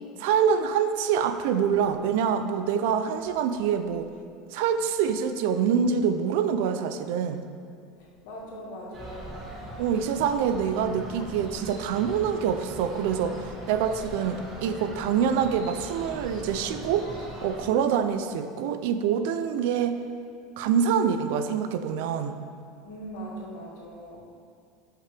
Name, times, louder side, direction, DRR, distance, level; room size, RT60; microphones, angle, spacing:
voice 1, 0.2-4.1 4.5-7.4 9.8-13.4 13.7-17.1 17.4-20.0 20.6-22.4, right 7 dB, 65° right, 9 dB, 0.5 m, -25 dB
voice 2, 8.0-9.7 22.8-24.2, equal, 75° left, -4 dB, 2.3 m, -41 dB
sound 1, 8.9-17.6, right 1 dB, 25° right, 1.6 m, -41 dB
12.5 x 5.7 x 3.5 m, 2.3 s
supercardioid pair, 165°, 0 cm